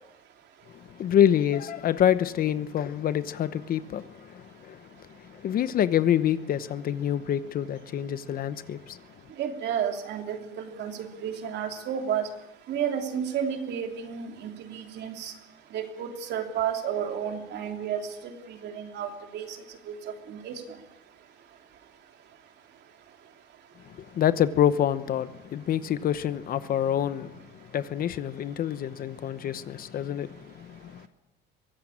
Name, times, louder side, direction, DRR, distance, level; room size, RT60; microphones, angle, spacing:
voice 1, 0.7-4.8 5.3-9.0 24.0-27.3 27.7-31.1, left 10 dB, 45° left, 13 dB, 1.0 m, -26 dB
voice 2, 9.4-12.3 12.7-15.3 15.7-19.6 19.9-20.0 20.3-20.6, right 8 dB, 55° right, 4 dB, 3.2 m, -32 dB
23.0 x 16.5 x 8.7 m, 0.93 s
cardioid pair, 130°, 21 cm